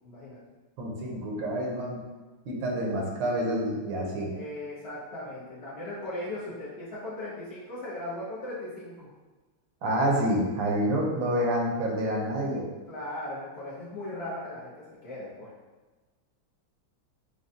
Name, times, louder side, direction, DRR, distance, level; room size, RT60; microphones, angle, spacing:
voice 1, 0.0-0.4 4.3-9.1 12.9-15.5, left 1 dB, 80° left, -8 dB, 0.5 m, -38 dB
voice 2, 0.8-2.0 2.5-4.3 9.8-12.7, right 1 dB, 70° right, -2 dB, 1.5 m, -28 dB
6.1 x 2.2 x 2.7 m, 1.2 s
omnidirectional pair, 2.3 m